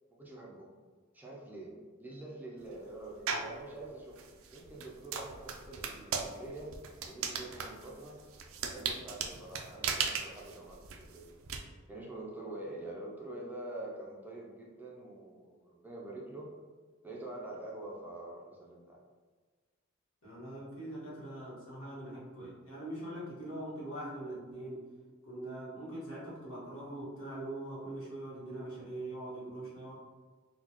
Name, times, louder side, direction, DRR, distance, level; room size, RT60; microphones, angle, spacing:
voice 1, 0.2-0.7 1.1-4.2 4.5-8.2 8.7-11.3 11.9-16.5 17.0-19.0, right 2 dB, 10° right, -3 dB, 0.5 m, -46 dB
sound 1, 3.3-3.6 4.2-11.6, right 6 dB, 75° right, 0.4 m, -37 dB
voice 2, 20.2-24.9 25.2-29.9, right 1 dB, 70° left, -7 dB, 1.4 m, -42 dB
4.1 x 2.2 x 2.9 m, 1.4 s
head